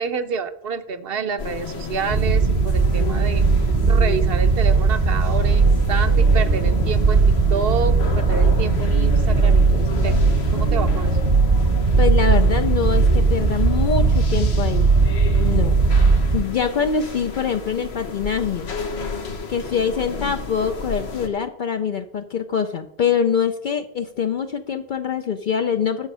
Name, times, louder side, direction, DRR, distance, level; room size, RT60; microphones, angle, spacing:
voice 1, 0.0-3.4 3.8-10.2 10.5-11.2, right 6 dB, 70° right, 11 dB, 1.0 m, -28 dB
sound 1, 1.4-21.3, left 4 dB, 90° left, 1.5 m, -32 dB
sound 2, 2.1-16.4, right 4 dB, 40° right, 0.8 m, -18 dB
voice 2, 12.0-14.9 15.4-15.8 16.1-18.7 19.5-26.1, left 6 dB, 55° left, 7 dB, 0.7 m, -24 dB
10.5 x 7.1 x 5.5 m, 0.77 s
omnidirectional pair, 1.0 m